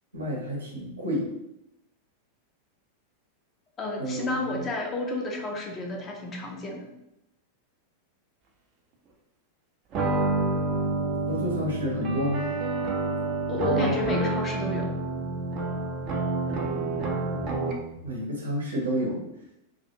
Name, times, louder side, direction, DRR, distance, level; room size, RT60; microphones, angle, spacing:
voice 1, 0.1-1.3 4.0-4.6 11.3-12.4 18.0-19.2, equal, 75° right, -3 dB, 0.8 m, -30 dB
voice 2, 3.8-6.9 13.5-14.9, left 2 dB, 25° left, 1 dB, 0.5 m, -30 dB
sound 1, 9.9-18.0, right 3 dB, 35° right, 0.5 m, -28 dB
2.3 x 2.2 x 2.9 m, 0.85 s
figure-of-eight pair, 90°, 0 cm